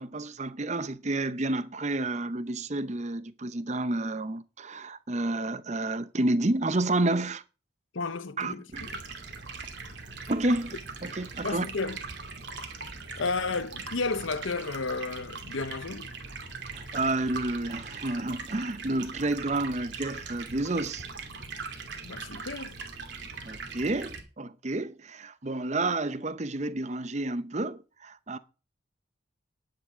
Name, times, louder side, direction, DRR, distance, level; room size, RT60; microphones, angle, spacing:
voice 1, 0.0-7.4 8.4-8.9 10.3-11.6 16.7-21.1 23.5-28.4, right 2 dB, 35° right, 0.7 m, -30 dB
voice 2, 7.9-9.0 11.4-12.0 13.2-16.1 22.0-22.8, left 3 dB, 75° left, 0.9 m, -32 dB
Stream, 8.7-24.2, right 4 dB, 60° right, 2.5 m, -41 dB
10.5 x 9.7 x 5.0 m
head